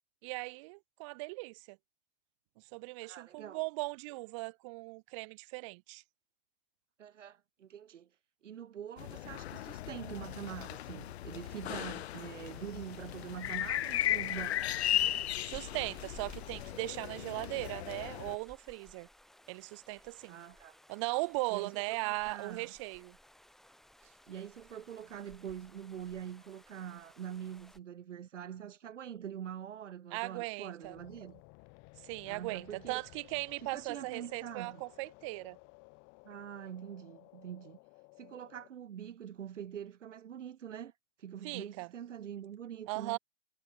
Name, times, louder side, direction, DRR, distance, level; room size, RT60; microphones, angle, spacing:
voice 1, 0.2-1.8 2.7-6.0 15.4-19.1 19.5-20.4 20.9-23.2 30.1-31.0 32.0-35.6 41.4-41.9 42.9-43.2, right 27 dB, 25° right, 0.6 m, -38 dB
voice 2, 3.0-3.6 7.0-8.1 8.4-14.8 20.3-20.8 21.5-22.7 24.3-31.4 32.3-33.0 33.6-34.8 36.2-37.8 38.2-40.9 41.2-43.2, right 9 dB, 80° right, 3.4 m, -44 dB
sound 1, 9.0-18.4, left 13 dB, 60° left, 1.3 m, -36 dB
sound 2, 11.4-27.8, left 1 dB, ahead, 3.1 m, -59 dB
sound 3, 30.8-38.7, left 32 dB, 35° left, 4.5 m, -57 dB
hypercardioid pair, 155°, 36 cm